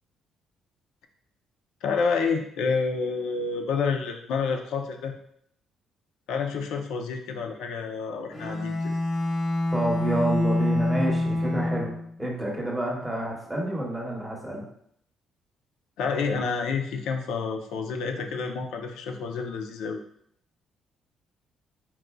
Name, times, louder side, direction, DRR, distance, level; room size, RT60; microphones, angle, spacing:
voice 1, 1.8-5.1 6.3-8.9 16.0-20.0, left 5 dB, 90° left, 4 dB, 0.5 m, -29 dB
Bowed string instrument, 8.3-12.1, left 1 dB, 35° left, 0.9 m, -26 dB
voice 2, 9.7-11.9 12.2-14.7, right 1 dB, 5° right, -2 dB, 0.9 m, -29 dB
4.4 x 3.8 x 2.2 m, 0.69 s
cardioid pair, 155°, 0 cm